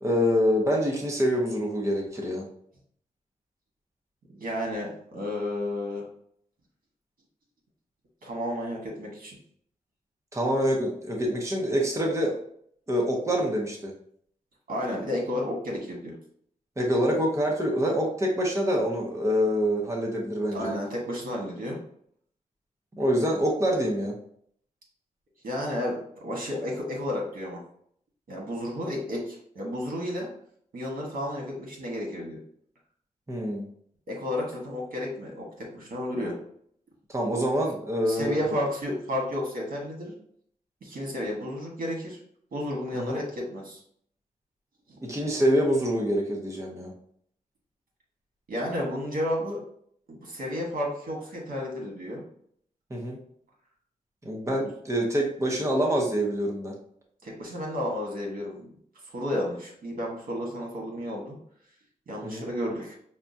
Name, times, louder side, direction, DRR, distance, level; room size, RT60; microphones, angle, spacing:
voice 1, 0.0-2.4 10.3-12.3 12.9-13.9 16.8-20.7 23.0-24.2 33.3-33.6 37.1-38.5 42.9-43.2 45.0-46.9 52.9-53.2 54.2-56.7 62.2-62.4, equal, 20° right, -1 dB, 0.8 m, -26 dB
voice 2, 4.3-6.0 8.2-9.4 14.7-16.1 20.5-21.8 25.4-27.6 28.3-30.3 30.7-32.4 34.1-35.5 35.7-36.4 38.1-40.1 40.8-42.2 42.5-43.8 44.9-45.0 48.5-49.6 50.1-52.2 57.2-58.7 59.1-61.3 62.1-62.9, left 1 dB, 75° right, -2 dB, 1.3 m, -32 dB
5.6 x 2.3 x 2.7 m, 0.65 s
wide cardioid pair, 100°, 14 cm